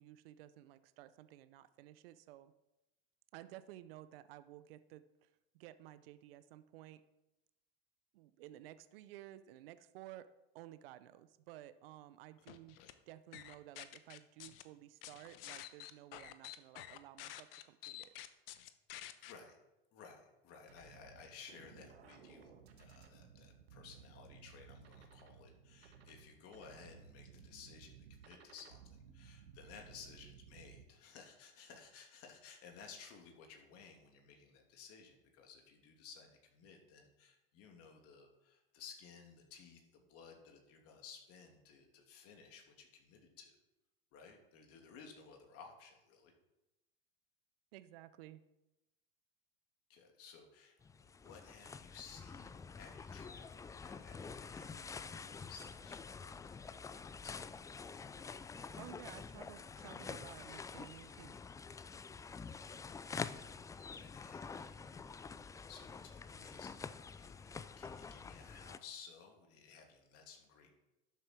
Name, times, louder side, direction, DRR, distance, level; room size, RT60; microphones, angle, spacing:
voice 1, 0.0-2.5 3.3-5.3 5.5-7.0 8.1-10.3 10.5-12.8 13.1-18.1 47.7-48.4 58.8-61.4, right 14 dB, 70° right, 14 dB, 0.7 m, -54 dB
sound 1, 12.5-12.9 13.3-14.6 15.0-19.3, left 13 dB, 70° left, 1.0 m, -49 dB
voice 2, 19.3-19.6 19.9-22.5 22.8-43.5 44.1-46.3 49.9-57.4 63.1-63.3 63.8-70.8, left 6 dB, 50° left, 2 dB, 2.8 m, -57 dB
sound 2, 20.7-30.9, right 6 dB, 85° right, 1.4 m, -58 dB
sound 3, 50.8-68.8, left 5 dB, 10° left, 0.4 m, -48 dB
12.0 x 7.8 x 4.6 m, 0.96 s
hypercardioid pair, 95°, 30 cm